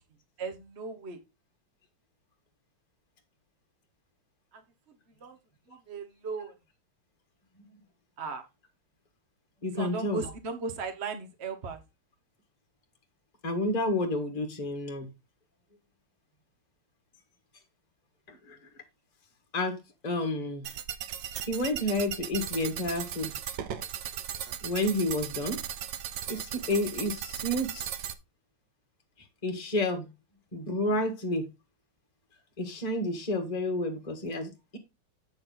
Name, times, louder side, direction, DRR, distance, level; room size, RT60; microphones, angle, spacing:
voice 1, 0.4-1.2 5.2-5.3 5.9-6.5 8.2-8.4 9.8-11.8, right 4 dB, 35° right, 1.2 m, -36 dB
voice 2, 9.6-10.3 13.4-15.1 18.3-18.6 19.5-19.8 20.0-20.7 21.5-23.4 24.6-25.6 26.3-27.9 29.4-30.1 30.5-31.5 32.6-34.8, left 1 dB, 20° left, 1.6 m, -30 dB
sound 1, 20.6-28.1, right 9 dB, 65° right, 1.4 m, -37 dB
8.5 x 6.9 x 4.0 m
omnidirectional pair, 2.4 m